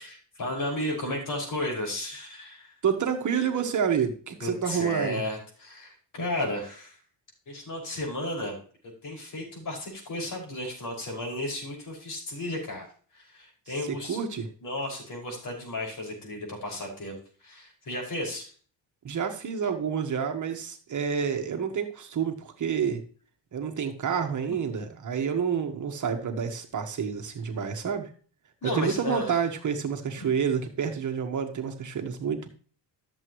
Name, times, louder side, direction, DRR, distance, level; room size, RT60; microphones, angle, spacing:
voice 1, 0.0-2.7 4.4-7.0 7.5-8.6 9.0-12.9 13.1-14.2 14.6-17.2 17.4-18.5 24.5-24.6 28.6-29.4 30.2-30.3, left 1 dB, 50° left, -1 dB, 5.8 m, -33 dB
voice 2, 2.8-5.2 13.8-14.5 19.0-23.0 23.5-28.1 28.6-32.5, right 7 dB, 45° right, 5 dB, 1.5 m, -29 dB
13.0 x 7.6 x 3.1 m, 0.41 s
cardioid pair, 110°, 40 cm